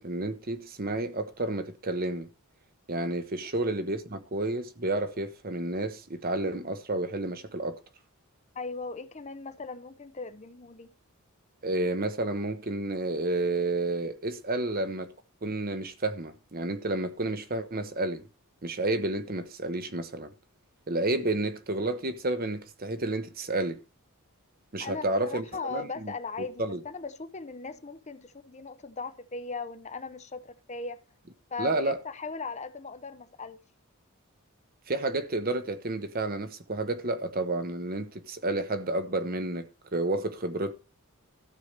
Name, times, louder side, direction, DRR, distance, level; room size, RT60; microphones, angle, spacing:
voice 1, 0.0-2.3 2.9-7.8 11.6-15.1 15.4-18.2 18.6-20.3 20.9-23.8 24.7-26.1 26.4-26.8 31.6-32.0 34.9-39.7 39.9-40.8, right 2 dB, 40° right, 1.1 m, -30 dB
voice 2, 8.5-10.9 24.8-31.0 31.5-33.6, left 4 dB, 30° left, 0.8 m, -38 dB
13.0 x 4.8 x 6.7 m
head